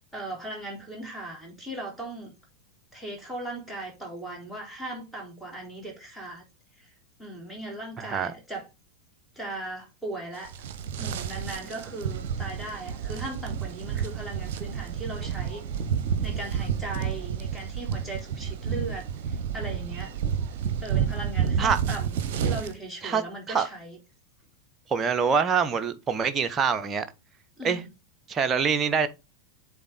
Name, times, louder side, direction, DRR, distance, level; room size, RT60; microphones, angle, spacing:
voice 1, 0.1-2.3 2.9-6.4 6.8-6.9 7.2-8.7 9.4-10.6 11.0-15.6 16.2-20.2 20.8-24.0 27.6-27.9, right 2 dB, ahead, 3.9 m, -38 dB
voice 2, 8.0-8.3 21.6-21.8 23.0-23.2 23.5-23.7 24.9-27.1 27.6-27.8 28.3-29.1, right 6 dB, 25° right, 1.0 m, -25 dB
sound 1, 10.4-22.7, right 7 dB, 50° right, 1.0 m, -30 dB
7.2 x 4.5 x 5.5 m
figure-of-eight pair, 90°, 0 cm